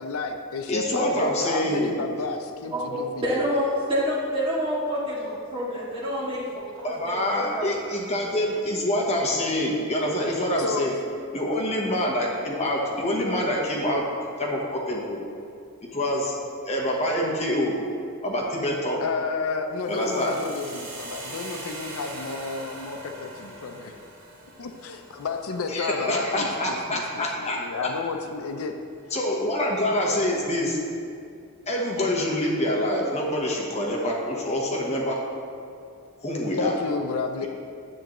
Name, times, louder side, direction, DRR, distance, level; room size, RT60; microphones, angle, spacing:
voice 1, 0.0-3.4 10.6-10.9 19.0-23.9 24.6-28.8 36.6-37.5, left 4 dB, 75° left, 5 dB, 0.5 m, -31 dB
voice 2, 0.7-2.0 6.8-10.9 11.3-14.0 14.4-15.2 15.8-16.3 16.6-17.7 18.2-19.0 19.9-20.3 25.7-27.6 29.1-30.8 31.7-35.2 36.2-36.7, left 1 dB, 30° left, -2 dB, 1.0 m, -26 dB
voice 3, 2.6-7.2 7.5-7.6, equal, 25° right, -8 dB, 2.1 m, -27 dB
sound 1, 19.7-27.8, right 2 dB, 65° right, 1.9 m, -42 dB
10.0 x 7.7 x 3.0 m, 2.4 s
head